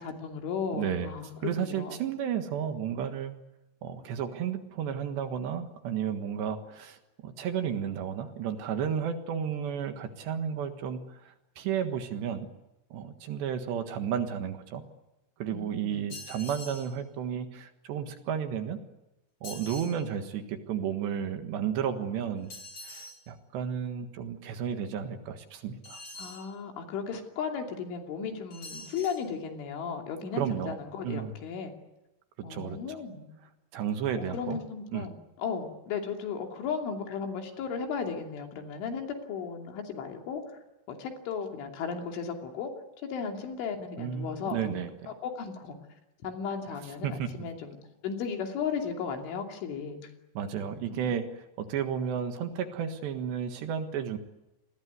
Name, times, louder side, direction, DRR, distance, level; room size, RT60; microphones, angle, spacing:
voice 1, 0.0-2.0 15.5-16.2 26.2-31.7 32.4-33.3 34.2-40.6 40.9-42.7 43.1-44.8 45.2-45.8 46.2-47.7 48.0-50.1 50.5-51.1, left 6 dB, 75° left, 3 dB, 5.2 m, -35 dB
voice 2, 0.7-1.1 1.4-3.3 3.8-11.0 11.3-12.5 12.9-14.8 15.4-18.8 19.4-22.5 22.8-26.0 30.4-30.8 31.0-31.3 32.5-33.0 33.7-34.6 34.9-35.1 44.0-45.1 47.0-47.3 50.3-54.2, right 8 dB, 65° right, 7 dB, 3.5 m, -32 dB
sound 1, 16.1-16.9 19.4-20.0 22.5-23.2 25.8-26.5 28.5-29.2, left 2 dB, 30° left, 5.2 m, -44 dB
28.5 x 21.0 x 9.5 m, 0.94 s
omnidirectional pair, 5.7 m